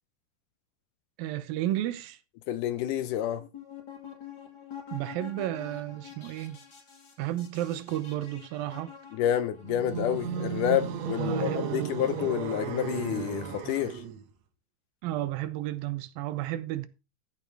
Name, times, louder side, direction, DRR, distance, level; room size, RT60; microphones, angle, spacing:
voice 1, 1.2-2.2 4.9-6.6 7.2-8.9 11.2-11.9 15.0-16.9, right 14 dB, 80° right, 2.6 m, -32 dB
voice 2, 2.5-3.4 9.1-14.0, left 11 dB, 75° left, 2.1 m, -29 dB
sound 1, 3.4-9.7, left 8 dB, 35° left, 2.3 m, -47 dB
sound 2, 9.6-14.3, right 7 dB, 65° right, 1.9 m, -34 dB
13.5 x 5.8 x 4.7 m
omnidirectional pair, 4.1 m